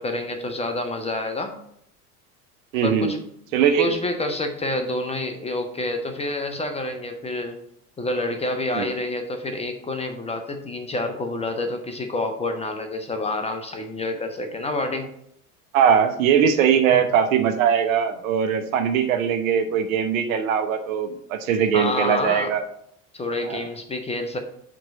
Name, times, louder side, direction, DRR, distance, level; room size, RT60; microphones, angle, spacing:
voice 1, 0.0-1.6 2.8-3.2 3.8-7.6 8.0-15.1 16.9-17.0 21.7-22.5 23.1-24.4, left 2 dB, 15° left, 6 dB, 0.6 m, -28 dB
voice 2, 2.7-3.2 3.5-3.9 8.7-8.9 15.7-22.6 23.4-23.6, right 8 dB, 60° right, 7 dB, 0.9 m, -21 dB
6.7 x 3.1 x 6.0 m, 0.70 s
figure-of-eight pair, 70°, 46 cm